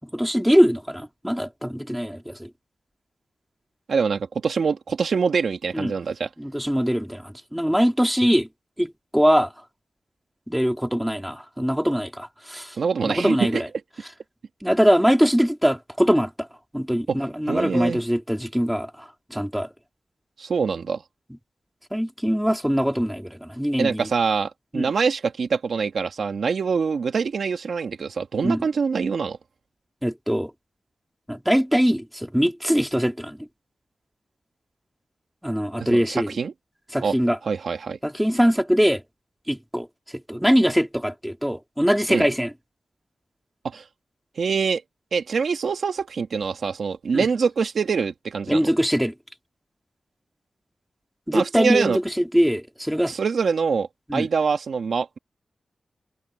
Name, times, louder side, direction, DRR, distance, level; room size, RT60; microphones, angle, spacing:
voice 1, 0.0-2.5 5.7-5.9 6.4-8.5 8.8-9.5 10.5-12.8 13.0-13.7 14.6-16.5 16.7-19.7 21.9-24.1 24.7-24.9 28.4-28.7 30.0-30.5 31.3-33.5 35.4-36.3 36.9-37.4 38.0-39.0 39.5-39.9 40.3-42.5 47.1-47.3 48.5-49.1 51.3-53.1 54.1-54.3, equal, ahead, 4.0 m, -22 dB
voice 2, 3.9-6.3 12.8-13.6 17.1-17.2 17.5-18.0 20.4-21.0 23.8-29.4 35.8-36.5 37.0-37.1 37.4-38.0 42.1-42.3 43.6-43.8 44.4-44.8 45.1-48.7 51.3-52.0 53.1-55.2, right 5 dB, 75° right, 1.8 m, -24 dB
wide cardioid pair, 160°, 0 cm